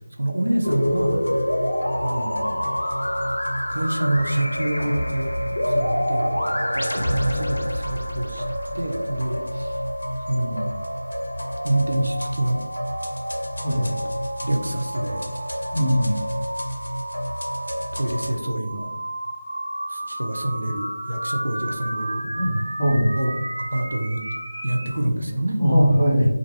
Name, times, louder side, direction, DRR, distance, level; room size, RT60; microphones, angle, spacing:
voice 1, 0.2-1.3 2.0-2.7 3.7-5.3 5.7-8.4 8.7-9.7 10.3-10.7 11.6-12.6 13.7-14.0 14.4-15.3 17.9-18.9 19.9-22.2 23.2-23.3 23.6-24.2 24.6-25.6, right 1 dB, 75° right, 3 dB, 0.5 m, -26 dB
sound 1, 0.6-18.3, equal, 80° left, 0.6 m, -27 dB
sound 2, 6.1-25.0, right 1 dB, 20° right, 1.0 m, -34 dB
voice 2, 15.7-16.2 22.3-23.1 25.6-26.3, equal, 25° left, -11 dB, 0.6 m, -20 dB
2.3 x 2.1 x 3.1 m, 0.91 s
figure-of-eight pair, 170°, 0 cm